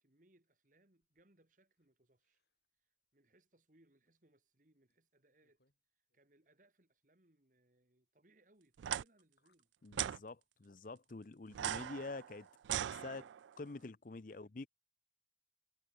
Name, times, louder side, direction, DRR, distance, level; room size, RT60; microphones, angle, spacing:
voice 1, 0.0-2.4 2.8-5.6 6.1-9.7 14.1-14.5, right 1 dB, 45° right, 2.2 m, -72 dB
sound 1, 1.0-1.9 2.2-2.7 3.1-3.2 4.1-4.2 4.9-5.0 5.4-5.8 6.1-6.2 8.7-8.8 9.2-9.7 10.1-11.4 11.7-13.0, left 3 dB, 65° left, 4.8 m, -77 dB
sound 2, 8.8-9.0 9.9-10.2 11.5-13.5, right 11 dB, 90° right, 0.3 m, -39 dB
voice 2, 9.8-12.5 12.8-13.3 13.6-14.7, left 3 dB, 45° left, 0.6 m, -47 dB
head